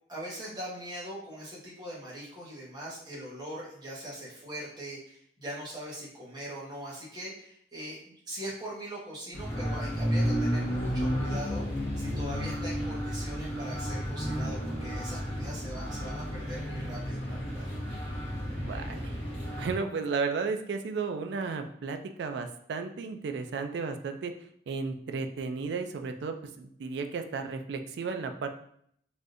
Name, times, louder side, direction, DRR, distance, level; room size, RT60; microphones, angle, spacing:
voice 1, 0.1-11.6 12.0-17.6, equal, 25° right, -7 dB, 1.0 m, -41 dB
sound 1, 9.3-19.7, equal, 35° left, 1.0 m, -32 dB
voice 2, 18.5-19.2 19.6-24.3 24.7-28.5, right 4 dB, 80° right, 6 dB, 0.3 m, -34 dB
3.4 x 2.6 x 2.5 m, 0.66 s
head